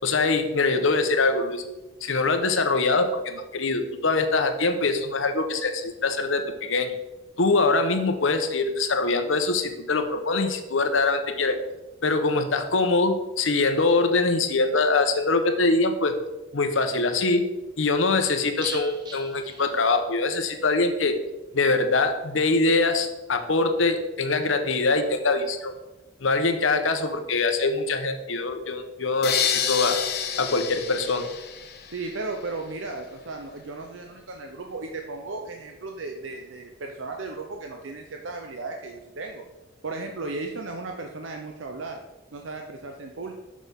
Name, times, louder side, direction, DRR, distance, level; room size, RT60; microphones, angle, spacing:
voice 1, 0.0-1.6 2.0-6.9 7.4-11.6 12.0-16.1 16.5-17.5 17.8-21.2 21.5-25.7 26.2-30.0 30.4-31.3, left 3 dB, 80° left, 7 dB, 0.9 m, -23 dB
sound 1, 18.6-20.4 20.7-20.8 21.1-21.2, right 2 dB, 20° right, 1.3 m, -41 dB
sound 2, 29.2-32.2, left 7 dB, 55° left, 0.9 m, -28 dB
voice 2, 31.9-39.4 39.8-42.0 42.3-43.3, right 3 dB, 80° right, 3 dB, 0.7 m, -35 dB
6.4 x 6.2 x 5.2 m, 1.0 s
head